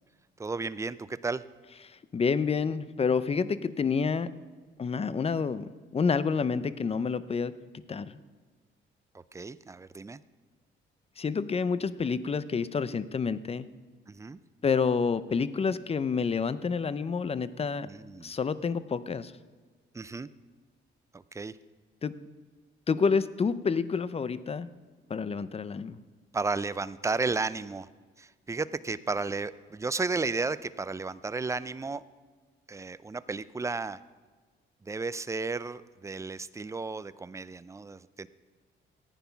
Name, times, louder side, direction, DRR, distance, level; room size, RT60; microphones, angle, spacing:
voice 1, 0.4-1.4 9.1-10.2 14.1-14.4 17.9-18.3 19.9-20.3 21.1-21.6 26.3-27.9 28.2-32.0 32.7-34.0 34.8-38.3, right 3 dB, 15° right, 16 dB, 0.4 m, -33 dB
voice 2, 2.1-4.3 4.8-5.7 5.9-7.5 7.9-8.2 11.2-13.7 14.6-17.9 18.2-19.3 22.0-22.1 22.9-24.7 25.1-26.0, left 5 dB, 30° left, 15 dB, 0.6 m, -28 dB
14.5 x 9.2 x 5.8 m, 1.4 s
cardioid pair, 90°, 20 cm